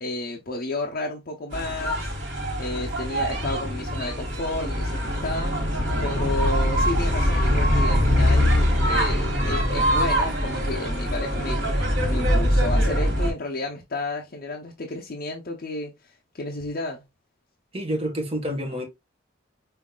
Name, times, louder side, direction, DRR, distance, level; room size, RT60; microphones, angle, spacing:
voice 1, 0.0-2.1 2.6-5.6 6.0-11.6 12.1-17.0, left 2 dB, 50° left, 0.7 m, -32 dB
sound 1, 1.5-13.3, equal, 65° right, 2.1 m, -23 dB
voice 2, 17.7-18.8, equal, 30° right, 1.2 m, -28 dB
5.6 x 3.1 x 2.3 m
head